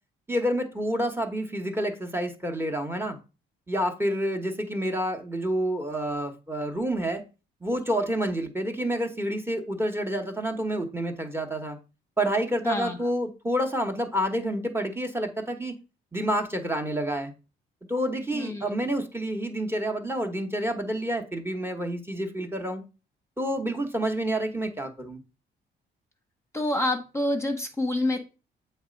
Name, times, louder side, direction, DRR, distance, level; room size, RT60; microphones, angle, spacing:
voice 1, 0.3-3.2 3.7-7.2 7.6-11.8 12.2-15.7 16.1-17.3 17.9-22.8 23.4-25.2, right 1 dB, 10° right, 4 dB, 1.1 m, -28 dB
voice 2, 12.6-13.0 18.3-18.9 26.5-28.2, left 1 dB, 15° left, 4 dB, 1.0 m, -27 dB
7.2 x 3.2 x 5.2 m, 0.32 s
cardioid pair, 90°, 20 cm